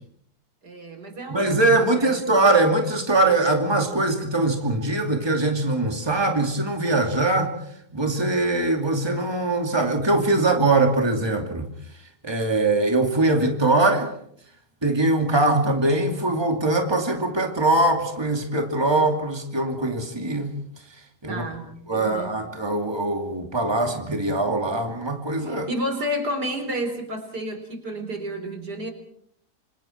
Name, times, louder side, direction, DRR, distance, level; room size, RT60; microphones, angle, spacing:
voice 1, 0.6-2.2 21.3-22.4 25.4-28.9, equal, 85° right, 6 dB, 4.7 m, -31 dB
voice 2, 1.3-7.5 7.9-11.7 12.2-14.1 14.8-20.5 21.2-21.4 21.9-25.7, right 2 dB, 15° right, 4 dB, 2.7 m, -22 dB
27.5 x 26.5 x 4.6 m, 0.66 s
omnidirectional pair, 1.7 m